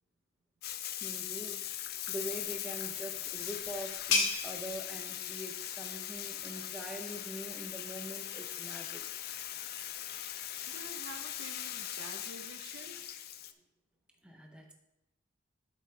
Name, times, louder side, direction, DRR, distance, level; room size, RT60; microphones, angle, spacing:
Bathtub (filling or washing), 0.6-13.5, left 11 dB, 50° left, 0.4 m, -40 dB
voice 1, 1.0-1.6 2.1-9.0 14.2-14.7, equal, 5° right, 2 dB, 0.8 m, -44 dB
sound 1, 2.8-8.2, left 3 dB, 75° left, 1.8 m, -38 dB
voice 2, 10.7-13.0, right 2 dB, 70° right, 4 dB, 1.0 m, -49 dB
12.0 x 5.0 x 3.4 m, 0.90 s
head